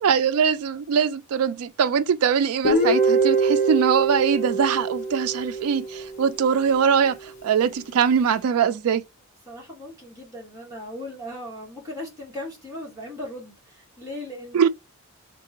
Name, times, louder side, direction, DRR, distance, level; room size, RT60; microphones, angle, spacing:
voice 1, 0.0-9.0 14.5-14.7, right 7 dB, 75° right, 0.4 m, -22 dB
Guitar, 2.6-6.5, right 3 dB, 35° left, 0.9 m, -23 dB
voice 2, 9.5-14.7, left 1 dB, 15° right, 2.0 m, -38 dB
3.5 x 3.3 x 2.8 m
head